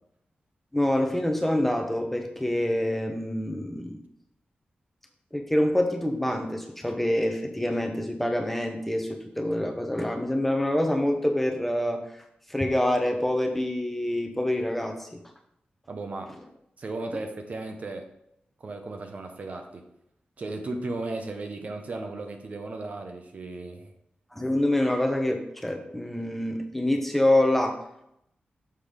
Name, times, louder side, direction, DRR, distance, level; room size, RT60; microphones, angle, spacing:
voice 1, 0.7-4.0 5.3-12.0 12.5-15.2 24.3-27.8, left 1 dB, 5° left, 3 dB, 0.7 m, -26 dB
voice 2, 15.9-16.3 16.8-18.1 18.6-19.9 20.4-23.9, right 2 dB, 45° right, 5 dB, 0.8 m, -35 dB
6.7 x 3.9 x 5.0 m, 0.77 s
wide cardioid pair, 150°, 3 cm